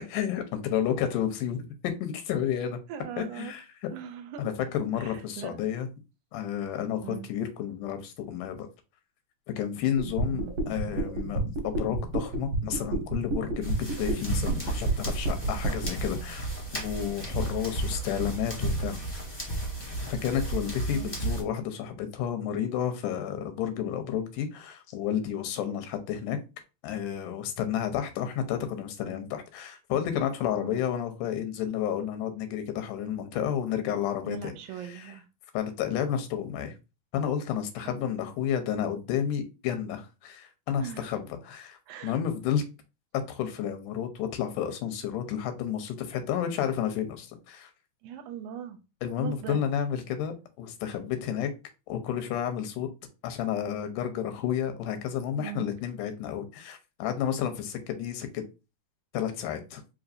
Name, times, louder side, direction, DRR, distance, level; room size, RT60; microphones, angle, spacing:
voice 1, 0.0-2.8 3.2-3.6 4.4-5.9 6.3-8.7 9.6-19.2 20.0-26.4 26.8-34.6 34.9-35.0 35.5-36.7 37.1-42.6 43.3-47.7 49.0-51.5 51.9-52.9 53.2-58.4 59.1-59.8, left 9 dB, 90° left, 2.2 m, -31 dB
voice 2, 2.9-3.5 3.9-4.5 5.0-5.6 7.0-7.3 10.3-10.6 20.9-21.2 30.5-30.8 33.8-33.9 34.3-35.3 37.9-38.0 40.8-41.1 41.9-42.1 48.0-48.8 49.2-49.6 55.3-55.7, right 9 dB, 80° right, 1.9 m, -40 dB
sound 1, 10.0-15.9, right 2 dB, 60° right, 1.8 m, -29 dB
sound 2, 13.6-21.4, right 2 dB, 15° left, 0.8 m, -33 dB
5.1 x 2.8 x 2.5 m
omnidirectional pair, 3.6 m